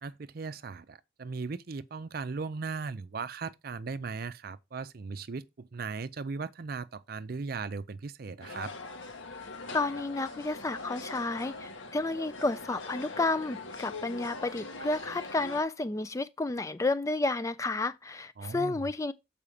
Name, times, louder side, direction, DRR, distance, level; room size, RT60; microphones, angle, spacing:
voice 1, 0.0-8.7 18.4-18.9, right 4 dB, 50° right, 0.5 m, -38 dB
sound 1, 8.4-15.6, left 3 dB, 80° left, 1.5 m, -42 dB
voice 2, 9.7-19.1, left 2 dB, 15° left, 0.3 m, -31 dB
7.1 x 4.9 x 4.9 m
head